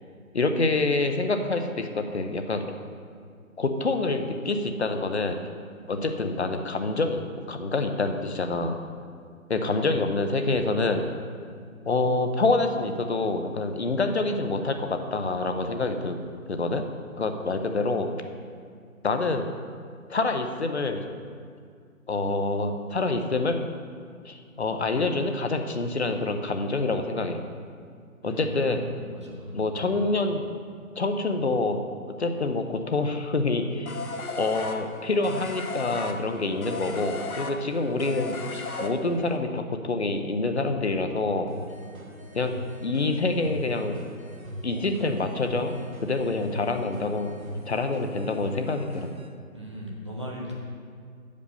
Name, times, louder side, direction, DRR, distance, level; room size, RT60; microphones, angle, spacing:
voice 1, 0.3-2.6 3.6-5.4 5.9-7.2 7.5-8.8 9.5-11.1 11.9-16.2 16.5-16.8 17.2-18.1 19.0-19.5 20.1-21.0 22.1-23.6 24.3-27.4 28.2-28.8 29.5-30.4 31.0-31.8 32.1-34.0 34.4-38.4 38.8-41.5 42.3-42.5 42.8-44.0 44.6-45.7 46.0-47.3 47.7-49.1, left 3 dB, 50° left, 6 dB, 0.7 m, -26 dB
voice 2, 28.2-30.0 49.5-50.5, equal, 20° right, -4 dB, 0.8 m, -38 dB
sound 1, 33.9-39.4, left 3 dB, 90° left, 1.0 m, -35 dB
sound 2, 41.5-49.3, equal, 75° right, 1.3 m, -40 dB
6.7 x 5.2 x 6.7 m, 2.1 s
figure-of-eight pair, 165°, 42 cm